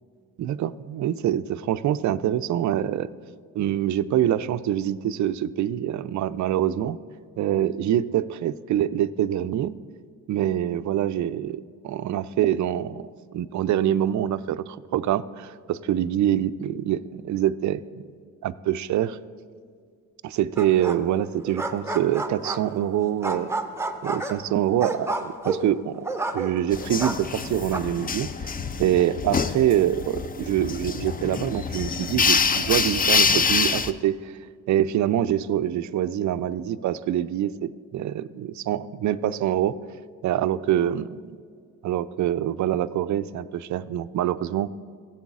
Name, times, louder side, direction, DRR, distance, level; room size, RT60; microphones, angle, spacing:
voice 1, 0.4-3.1 3.6-7.0 7.4-9.7 10.3-13.0 13.3-18.0 18.4-19.2 20.2-23.5 24.0-26.1 26.3-28.3 28.8-34.3 34.7-39.8 40.2-41.4 41.8-44.7, right 11 dB, 45° right, 14 dB, 0.4 m, -25 dB
sound 1, 20.6-21.2 21.4-22.8 23.2-26.7 27.0-27.8, right 3 dB, 5° right, 0.7 m, -30 dB
sound 2, 26.7-33.9, left 5 dB, 20° left, 0.4 m, -25 dB
15.5 x 7.6 x 2.4 m, 2.1 s
hypercardioid pair, 50°, 42 cm